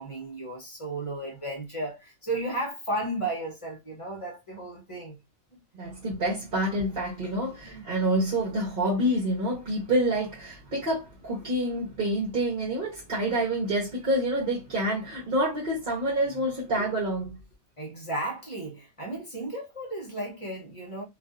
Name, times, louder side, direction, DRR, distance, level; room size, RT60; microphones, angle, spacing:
voice 1, 0.0-5.2 7.6-7.9 17.8-21.0, right 1 dB, 30° left, 0.7 m, -34 dB
voice 2, 5.7-17.4, right 1 dB, 45° right, 1.0 m, -27 dB
2.5 x 2.4 x 2.3 m
omnidirectional pair, 1.4 m